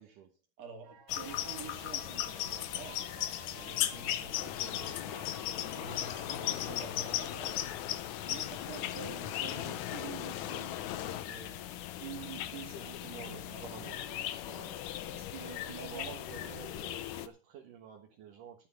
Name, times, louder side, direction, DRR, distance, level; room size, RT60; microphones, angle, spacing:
voice 1, 0.0-0.4 5.8-6.6 13.0-15.1 15.8-18.7, right 8 dB, 65° right, 2.9 m, -51 dB
voice 2, 0.6-3.1 3.5-7.7 8.3-11.7 12.0-14.1 15.1-16.7, right 6 dB, 50° right, 3.6 m, -48 dB
sound 1, 0.8-8.9, right 8 dB, 80° right, 3.2 m, -55 dB
sound 2, 1.1-17.3, left 12 dB, 70° left, 2.1 m, -38 dB
sound 3, 4.3-11.2, left 12 dB, 90° left, 1.6 m, -41 dB
12.0 x 6.4 x 7.3 m
omnidirectional pair, 4.4 m